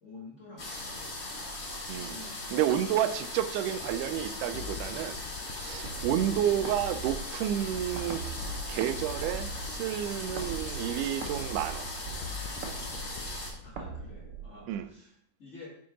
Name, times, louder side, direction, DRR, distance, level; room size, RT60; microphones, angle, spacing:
voice 1, 0.0-1.6 1.9-3.0 6.0-6.2 13.6-15.7, left 2 dB, 25° left, 1.9 m, -50 dB
sound 1, 0.6-13.5, left 2 dB, 45° left, 0.8 m, -39 dB
voice 2, 1.9-5.2 5.6-11.9 14.7-14.9, right 11 dB, 85° right, 2.0 m, -31 dB
sound 2, 3.8-14.2, left 6 dB, 80° left, 1.5 m, -45 dB
sound 3, 5.8-14.9, right 5 dB, 70° right, 1.3 m, -41 dB
8.5 x 4.8 x 3.9 m
omnidirectional pair, 3.6 m